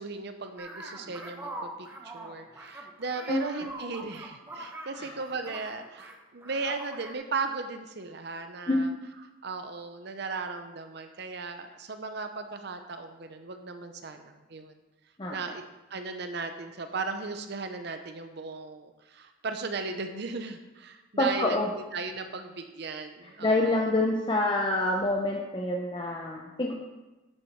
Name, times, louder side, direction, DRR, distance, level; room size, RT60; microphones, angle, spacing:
voice 1, 0.0-8.9 9.4-14.8 15.3-15.6 15.9-23.9, right 4 dB, 60° right, 7 dB, 0.7 m, -36 dB
sound 1, 0.6-6.2 6.4-7.1, right 1 dB, 10° right, 1.0 m, -43 dB
voice 2, 21.2-21.7 23.4-26.7, left 2 dB, 25° left, 0 dB, 0.8 m, -26 dB
10.0 x 7.0 x 4.6 m, 1.1 s
head